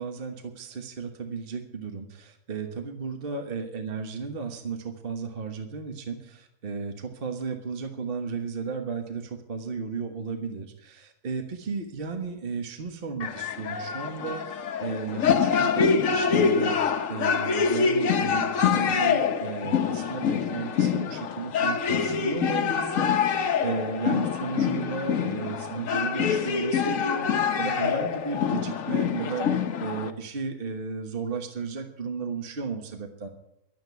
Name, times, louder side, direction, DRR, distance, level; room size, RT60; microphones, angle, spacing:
voice 1, 0.0-33.3, right 5 dB, 40° right, 5 dB, 1.4 m, -34 dB
sound 1, 13.2-30.1, left 6 dB, 60° left, 1.2 m, -25 dB
12.0 x 7.6 x 9.4 m, 0.79 s
omnidirectional pair, 1.6 m